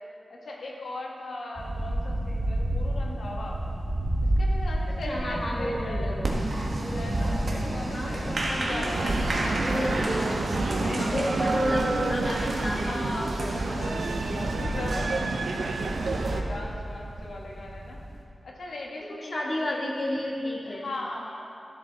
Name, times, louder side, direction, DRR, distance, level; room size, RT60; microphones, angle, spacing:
voice 1, 0.0-3.6 4.2-6.1 6.9-9.9 10.8-11.5 12.8-15.9 16.2-18.0 18.4-19.8 20.6-21.5, left 2 dB, 85° left, -2 dB, 1.5 m, -38 dB
sound 1, 1.6-18.2, right 1 dB, 35° right, 2.0 m, -32 dB
voice 2, 5.1-6.3 7.9-8.1 9.5-10.3 11.0-13.9 19.3-20.9, left 1 dB, 35° left, -3 dB, 1.6 m, -31 dB
Applause, 6.2-16.4, right 1 dB, 55° right, 1.3 m, -31 dB
sound 2, 8.9-16.4, right 4 dB, 90° right, 0.5 m, -31 dB
14.0 x 7.0 x 4.0 m, 2.7 s
wide cardioid pair, 125°, 0 cm